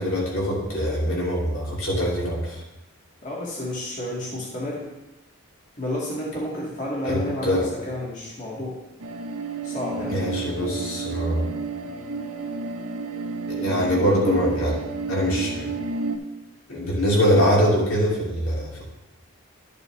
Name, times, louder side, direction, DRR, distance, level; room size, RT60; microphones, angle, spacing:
voice 1, 0.0-2.6 7.0-7.7 10.1-11.5 13.5-14.8 15.1-15.7 16.7-18.9, equal, 70° left, -4 dB, 2.7 m, -23 dB
voice 2, 3.2-4.9 5.8-8.8 9.6-10.2, left 1 dB, 35° left, -6 dB, 1.9 m, -31 dB
sound 1, 9.0-16.2, right 4 dB, 90° right, 0.7 m, -31 dB
11.5 x 6.8 x 3.2 m, 0.96 s
head